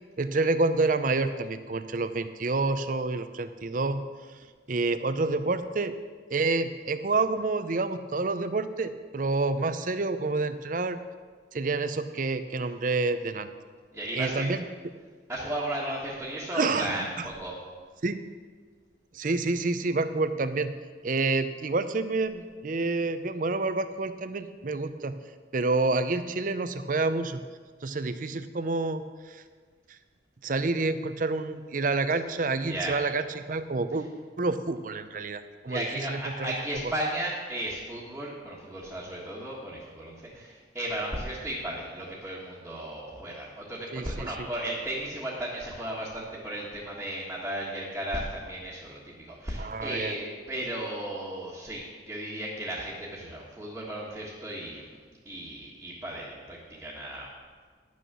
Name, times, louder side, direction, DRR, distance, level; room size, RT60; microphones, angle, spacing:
voice 1, 0.2-4.0 4.7-5.9 6.3-11.0 11.5-13.5 14.1-14.6 16.5-17.3 18.0-18.2 19.1-20.7 21.0-25.2 25.5-27.4 27.8-29.4 30.4-34.1 34.4-36.6 36.8-36.9 43.9-44.5 49.6-50.1, right 3 dB, 45° right, 10 dB, 0.6 m, -28 dB
voice 2, 13.9-14.4 15.3-17.5 32.6-33.0 35.7-54.8 55.2-57.3, right 1 dB, 10° right, -8 dB, 1.6 m, -35 dB
11.0 x 6.3 x 6.9 m, 1.6 s
head